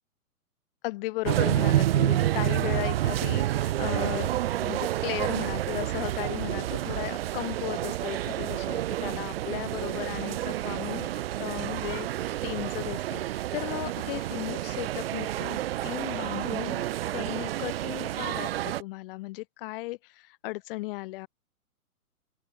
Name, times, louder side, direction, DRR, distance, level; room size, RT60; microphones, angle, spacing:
voice 1, 0.8-4.3 4.6-11.1 11.4-21.3, left 20 dB, 35° left, 5.7 m, -36 dB
sound 1, 1.2-18.8, right 13 dB, 40° right, 1.2 m, -29 dB
open air
figure-of-eight pair, 130°, 45 cm